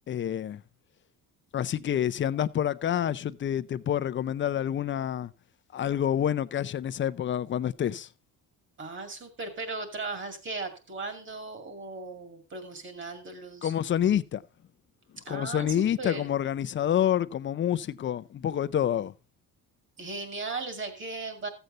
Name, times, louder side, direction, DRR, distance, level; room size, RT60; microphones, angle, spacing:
voice 1, 0.1-0.6 1.5-5.3 5.7-8.1 13.6-14.4 15.3-19.1, left 10 dB, 35° left, 0.5 m, -28 dB
voice 2, 8.8-13.7 15.2-16.3 20.0-21.5, right 3 dB, 35° right, 2.5 m, -37 dB
14.0 x 8.0 x 3.9 m
cardioid pair, 130°, 36 cm